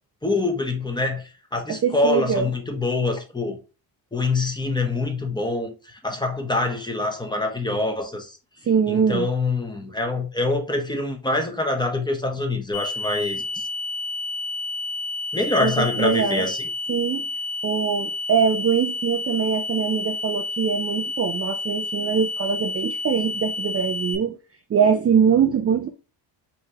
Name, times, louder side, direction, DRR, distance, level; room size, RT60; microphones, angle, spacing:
voice 1, 0.2-3.6 4.1-8.4 8.9-13.7 15.3-16.7, left 2 dB, 10° left, 0.9 m, -25 dB
voice 2, 1.7-2.5 8.7-9.3 15.6-16.5 16.9-17.2 17.6-24.4 24.7-25.9, right 7 dB, 35° right, 0.4 m, -22 dB
sound 1, 12.7-24.1, left 2 dB, 55° left, 2.3 m, -30 dB
5.7 x 3.2 x 2.8 m
cardioid pair, 135°, 46 cm